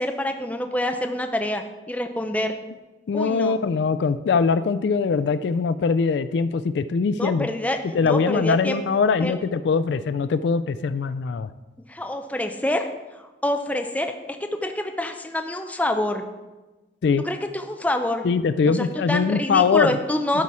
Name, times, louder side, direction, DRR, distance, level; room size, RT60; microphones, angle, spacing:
voice 1, 0.0-2.6 3.1-3.6 7.1-8.8 9.2-9.3 11.9-12.9 13.2-16.3 17.2-18.3 18.7-20.4, left 1 dB, 10° left, 5 dB, 0.5 m, -27 dB
voice 2, 3.1-7.5 7.9-11.5 17.0-17.2 18.2-20.0, left 5 dB, 70° left, 14 dB, 0.3 m, -22 dB
12.0 x 4.3 x 4.7 m, 1.1 s
head